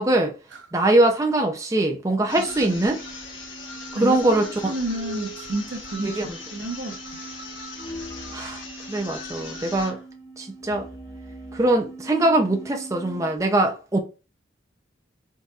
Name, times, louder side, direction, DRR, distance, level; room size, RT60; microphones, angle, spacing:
voice 1, 0.0-0.3 0.7-3.0 4.0-4.7 6.0-6.3 8.3-8.6 8.9-10.0 10.4-10.9 11.5-14.0, right 2 dB, 15° right, 0.5 m, -22 dB
sound 1, 2.2-13.4, right 3 dB, 15° left, 1.4 m, -42 dB
sound 2, 2.3-10.0, left 3 dB, 85° left, 1.1 m, -39 dB
voice 2, 2.4-2.8 4.0-6.2 6.5-7.2, right 2 dB, 80° right, 0.9 m, -31 dB
3.9 x 3.9 x 2.3 m
head